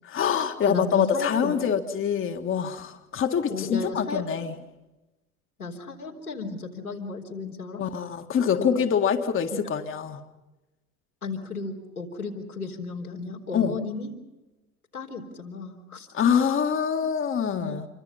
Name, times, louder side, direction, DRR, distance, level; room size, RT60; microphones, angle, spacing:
voice 1, 0.0-4.5 7.8-10.2 13.5-13.8 16.1-17.9, left 7 dB, 30° left, 5 dB, 1.7 m, -25 dB
voice 2, 0.7-1.7 3.5-4.2 5.6-7.8 8.6-8.7 9.5-9.6 11.2-14.1 14.9-16.1 17.6-17.7, left 4 dB, 85° left, -2 dB, 3.9 m, -34 dB
27.5 x 24.5 x 5.6 m, 1.0 s
figure-of-eight pair, 70°, 43 cm